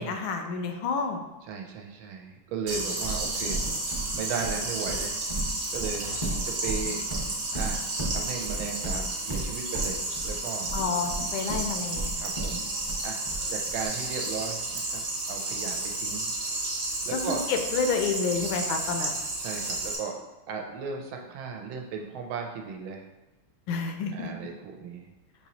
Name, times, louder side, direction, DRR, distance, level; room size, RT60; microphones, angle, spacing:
voice 1, 0.0-1.2 10.7-12.2 17.1-19.1 23.7-24.3, left 5 dB, 80° left, 5 dB, 1.3 m, -29 dB
voice 2, 1.4-3.6 4.1-5.2 5.7-7.8 8.1-10.7 12.2-12.6 13.0-13.2 13.5-16.3 17.0-17.4 19.4-20.2 20.5-23.1 24.1-25.1, right 6 dB, 80° right, 2 dB, 1.4 m, -36 dB
sound 1, 2.7-20.0, right 2 dB, 50° right, 1.2 m, -32 dB
Livestock farm animals working animals, 3.0-13.9, right 2 dB, 20° right, 0.6 m, -34 dB
6.1 x 3.0 x 2.8 m, 1.1 s
omnidirectional pair, 2.3 m